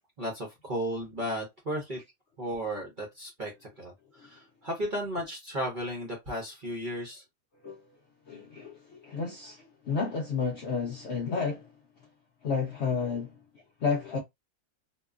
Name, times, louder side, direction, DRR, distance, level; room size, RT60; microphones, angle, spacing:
voice 1, 0.2-2.0 2.4-7.2, equal, 45° right, 0.7 m, -34 dB
voice 2, 8.3-11.7 12.4-13.3 13.8-14.2, left 5 dB, 65° left, 0.7 m, -31 dB
2.9 x 2.2 x 2.3 m
omnidirectional pair, 1.8 m